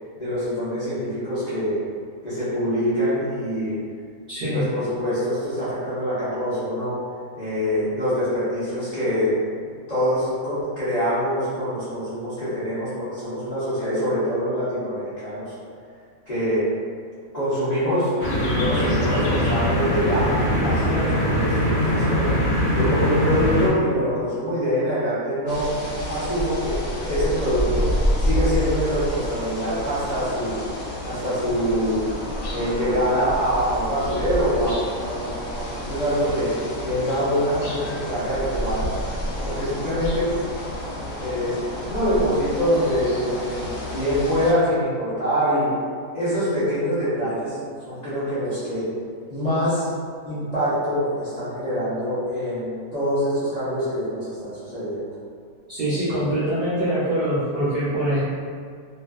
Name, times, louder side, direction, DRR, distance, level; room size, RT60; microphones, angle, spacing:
voice 1, 0.2-1.8 2.2-3.8 4.4-7.0 7.3-9.3 9.6-15.5 16.3-16.7 17.3-22.3 22.7-25.7 26.1-27.9 28.2-30.5 31.0-32.0 32.5-36.5 36.8-38.9 39.3-40.3 41.2-41.6 41.9-45.7 46.1-47.6 47.8-48.9 49.3-49.9 50.2-55.1, equal, 40° left, -13 dB, 0.6 m, -25 dB
voice 2, 4.3-4.7 55.7-58.2, right 1 dB, 60° right, -12 dB, 0.6 m, -24 dB
sound 1, 18.2-23.7, equal, 90° left, 0.4 m, -22 dB
sound 2, 25.5-44.5, equal, 70° left, 1.0 m, -29 dB
2.6 x 2.3 x 2.3 m, 2.1 s
omnidirectional pair, 1.6 m